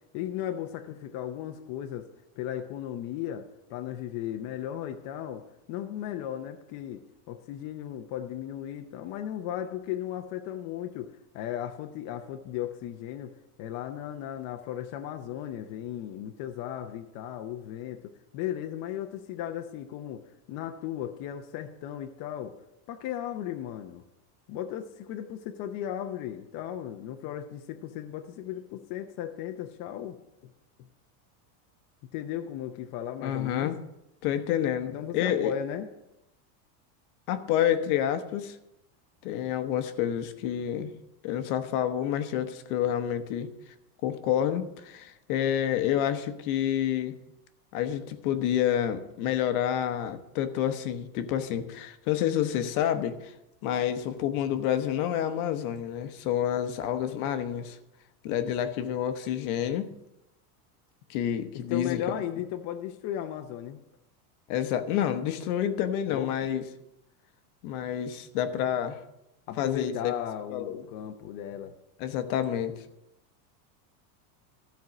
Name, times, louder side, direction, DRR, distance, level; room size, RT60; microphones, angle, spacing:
voice 1, 0.1-2.1 2.4-5.4 5.7-7.0 7.3-11.1 11.3-13.3 13.6-20.2 20.5-22.5 22.9-24.0 24.5-30.2 30.4-30.5 32.1-33.7 34.9-35.9 61.5-63.8 66.1-66.3 69.5-71.7, left 10 dB, 40° left, 5 dB, 0.7 m, -36 dB
voice 2, 33.2-33.8 34.2-35.5 37.3-38.6 39.2-40.9 41.2-43.5 44.0-47.1 47.7-53.3 53.6-57.8 58.2-59.9 61.1-62.2 64.5-66.6 67.6-69.0 69.6-70.1 70.5-70.8 72.0-72.7, left 10 dB, 65° left, 9 dB, 1.1 m, -28 dB
13.5 x 4.6 x 6.1 m, 0.88 s
supercardioid pair, 150°, 47 cm